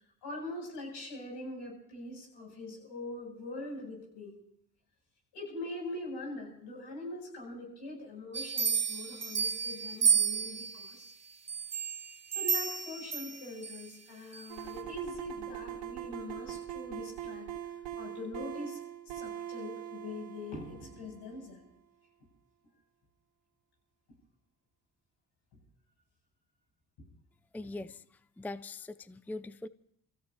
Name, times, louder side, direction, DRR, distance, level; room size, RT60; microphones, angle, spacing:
voice 1, 0.2-4.3 5.3-11.1 12.3-17.5 18.0-18.8 19.1-21.6 27.0-27.1, left 2 dB, 75° left, -1 dB, 7.9 m, -42 dB
sound 1, 8.3-10.9 11.5-13.8 14.3-14.4, right 6 dB, 40° right, 1.3 m, -31 dB
sound 2, 14.5-21.4, right 11 dB, 85° right, 3.3 m, -42 dB
voice 2, 27.5-29.7, left 2 dB, 5° left, 15 dB, 0.5 m, -42 dB
28.0 x 16.5 x 2.9 m, 0.74 s
supercardioid pair, 55°, 41 cm